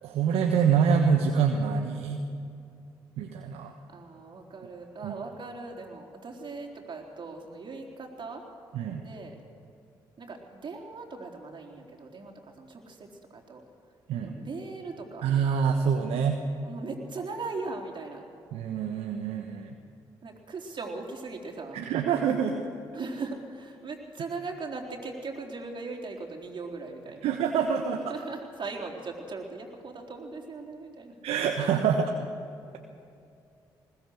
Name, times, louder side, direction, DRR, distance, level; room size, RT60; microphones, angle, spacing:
voice 1, 0.0-2.2 3.2-3.7 5.0-5.1 8.7-9.0 14.1-14.3 15.2-16.4 18.5-19.8 21.7-22.6 27.2-28.0 31.2-32.2, right 6 dB, 70° right, 4 dB, 1.3 m, -26 dB
voice 2, 3.9-8.4 9.0-9.4 10.2-13.6 14.2-15.3 16.6-18.3 20.2-21.8 22.9-27.3 28.1-31.1, right 3 dB, 50° right, 1 dB, 3.8 m, -39 dB
21.0 x 19.0 x 6.5 m, 2.5 s
hypercardioid pair, 40°, 11 cm